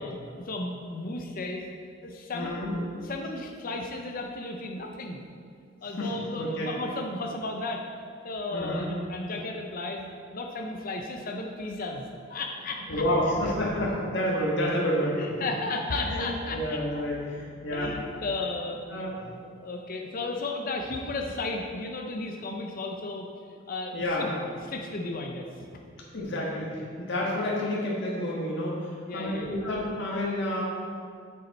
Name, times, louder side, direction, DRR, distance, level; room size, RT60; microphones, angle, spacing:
voice 1, 0.0-1.7 2.0-5.2 5.8-7.9 8.2-13.1 15.1-17.0 17.7-18.8 19.3-23.3 23.7-24.0 24.7-25.8 29.0-29.6, left 2 dB, 45° left, 2 dB, 0.6 m, -34 dB
voice 2, 2.3-2.7 6.0-6.7 8.5-8.9 12.9-15.2 16.1-17.9 18.9-19.1 23.9-24.3 26.1-30.6, left 1 dB, 65° left, -5 dB, 1.6 m, -29 dB
8.4 x 6.9 x 4.2 m, 2.2 s
head